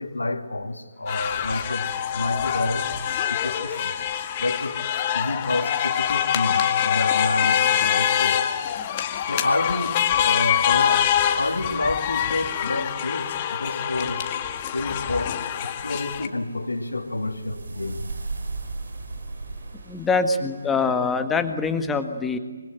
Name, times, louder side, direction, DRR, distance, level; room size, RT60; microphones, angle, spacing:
voice 1, 0.0-1.9 2.1-2.9 3.3-3.9 4.4-4.8 5.1-8.4 9.3-14.3 14.7-18.0, left 2 dB, 75° left, 2.9 m, -29 dB
sound 1, 1.1-16.3, left 10 dB, 30° left, 1.9 m, -25 dB
sound 2, 15.6-20.9, right 3 dB, 60° right, 3.0 m, -37 dB
voice 2, 19.9-22.4, left 4 dB, 10° left, 1.7 m, -24 dB
25.5 x 24.5 x 9.1 m
figure-of-eight pair, 145°, 0 cm